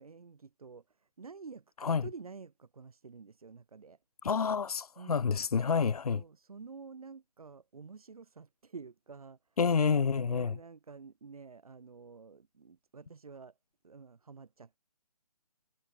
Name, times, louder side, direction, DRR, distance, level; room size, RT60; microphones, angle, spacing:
voice 1, 0.0-4.0 5.0-5.3 6.1-9.6 10.1-13.6 13.8-14.8, right 5 dB, 70° right, 3.2 m, -49 dB
voice 2, 4.2-6.2 9.6-10.6, left 6 dB, 75° left, 0.8 m, -28 dB
figure-of-eight pair, 150°, 20 cm